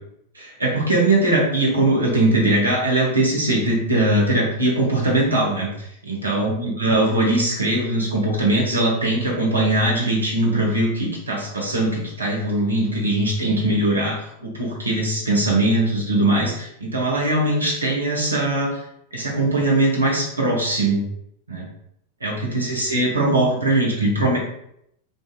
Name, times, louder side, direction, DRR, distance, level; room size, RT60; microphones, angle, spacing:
voice 1, 0.3-18.8 19.1-21.0 21.5-21.7 22.2-24.4, right 1 dB, 80° right, -2 dB, 0.7 m, -21 dB
2.5 x 2.5 x 2.3 m, 0.74 s
figure-of-eight pair, 90°, 0 cm